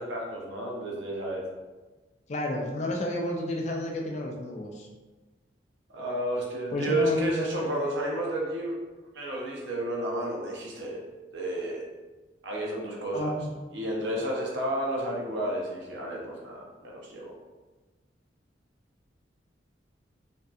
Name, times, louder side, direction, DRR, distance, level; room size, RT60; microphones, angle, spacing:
voice 1, 0.0-1.5 5.9-8.8 9.1-11.1 11.3-11.8 12.4-13.3 13.7-17.3, right 1 dB, 75° right, -2 dB, 0.6 m, -31 dB
voice 2, 2.3-4.9 6.7-7.3 13.1-13.5, left 1 dB, 40° left, 1 dB, 0.3 m, -30 dB
2.6 x 2.2 x 2.3 m, 1.2 s
head